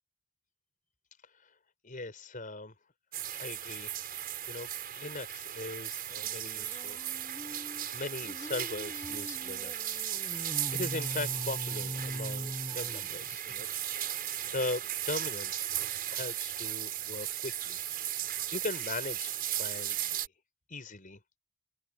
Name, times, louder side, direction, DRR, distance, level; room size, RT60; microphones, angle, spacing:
voice 1, 1.8-2.7 3.4-3.9 4.5-7.0 7.9-13.7 13.9-15.6 16.1-17.8 18.2-20.2 20.7-21.4, left 2 dB, 40° left, 5.3 m, -40 dB
sound 1, 3.1-20.3, right 11 dB, 45° right, 6.9 m, -36 dB
sound 2, 6.1-13.6, equal, 15° left, 3.5 m, -42 dB
open air
head